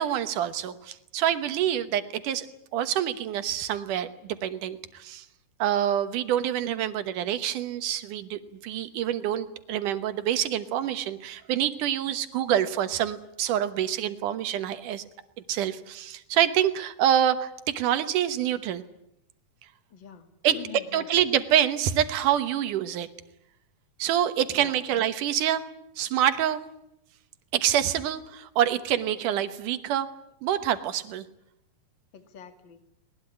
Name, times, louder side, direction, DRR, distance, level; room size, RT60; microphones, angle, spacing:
voice 1, 0.0-2.5 2.7-5.2 5.6-15.0 15.5-18.8 20.4-20.6 20.9-23.1 24.0-25.6 26.0-26.6 27.5-30.1 30.4-31.2, right 10 dB, 65° right, 11 dB, 2.4 m, -26 dB
voice 2, 19.9-21.1 24.5-24.8 32.1-32.8, left 7 dB, 40° left, 8 dB, 2.2 m, -44 dB
20.5 x 20.0 x 10.0 m, 0.77 s
omnidirectional pair, 4.4 m